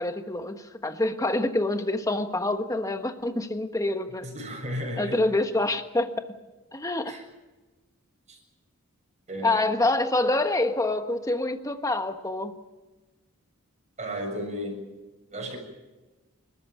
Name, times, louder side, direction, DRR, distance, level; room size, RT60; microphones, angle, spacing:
voice 1, 0.0-4.3 5.0-6.1 6.7-7.1 9.4-12.5, left 2 dB, 15° left, 7 dB, 1.3 m, -26 dB
voice 2, 4.2-5.2 7.0-7.2 8.3-8.4 9.3-9.6 14.0-14.8 15.3-15.6, equal, 30° right, 2 dB, 7.2 m, -34 dB
29.5 x 14.0 x 9.1 m, 1.2 s
head